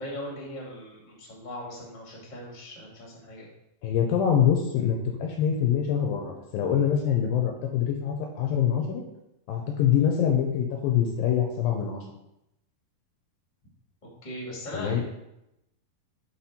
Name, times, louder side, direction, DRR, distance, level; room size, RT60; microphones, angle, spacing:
voice 1, 0.0-3.5 14.2-15.0, left 1 dB, 25° left, -3 dB, 0.9 m, -39 dB
voice 2, 3.8-9.0 9.5-12.0 14.7-15.0, left 8 dB, 80° left, 2 dB, 2.2 m, -25 dB
5.9 x 5.4 x 4.2 m, 0.86 s
omnidirectional pair, 4.5 m